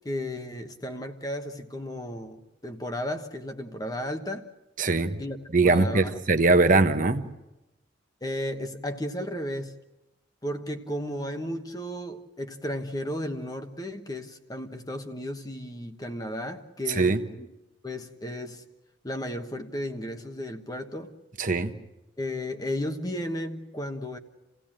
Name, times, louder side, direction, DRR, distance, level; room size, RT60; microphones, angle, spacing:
voice 1, 0.0-4.5 5.2-5.4 5.6-6.2 8.2-9.7 10.4-17.5 17.8-18.6 19.0-21.1 22.2-24.2, left 1 dB, 20° left, 1.2 m, -34 dB
voice 2, 4.8-5.2 5.5-7.2 17.0-17.2 21.4-21.7, right 3 dB, 45° right, 1.1 m, -21 dB
28.5 x 16.5 x 8.9 m
head